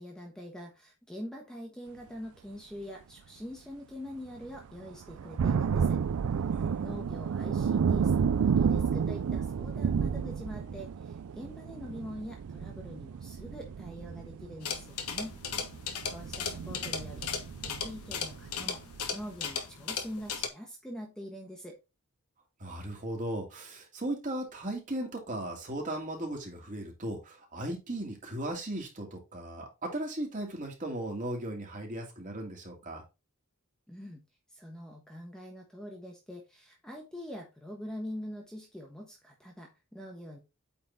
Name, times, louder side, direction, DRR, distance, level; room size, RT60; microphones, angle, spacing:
voice 1, 0.0-6.0 6.8-15.4 16.1-18.8 19.1-21.8 33.9-34.2 34.5-40.4, equal, 5° left, 0 dB, 1.2 m, -44 dB
sound 1, 4.4-4.5 5.1-18.5 18.9-19.0, right 6 dB, 70° right, 0.4 m, -31 dB
voice 2, 6.5-6.8 16.0-16.1 22.6-33.0, right 1 dB, 35° right, 0 dB, 2.5 m, -37 dB
sound 2, 14.6-20.5, left 6 dB, 85° left, 1.2 m, -37 dB
8.6 x 3.9 x 3.9 m, 0.26 s
head